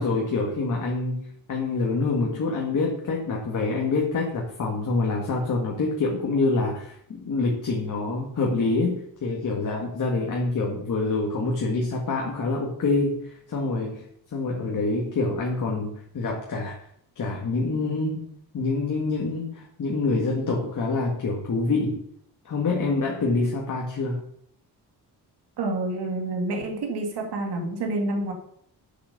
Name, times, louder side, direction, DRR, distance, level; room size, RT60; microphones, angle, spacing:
voice 1, 0.0-14.0 14.3-16.8 17.2-18.3 18.5-22.0 22.5-24.2, left 3 dB, 50° left, -1 dB, 1.8 m, -26 dB
voice 2, 25.6-28.3, right 2 dB, 75° right, 2 dB, 2.1 m, -28 dB
8.0 x 7.2 x 6.6 m, 0.69 s
wide cardioid pair, 145°, 40 cm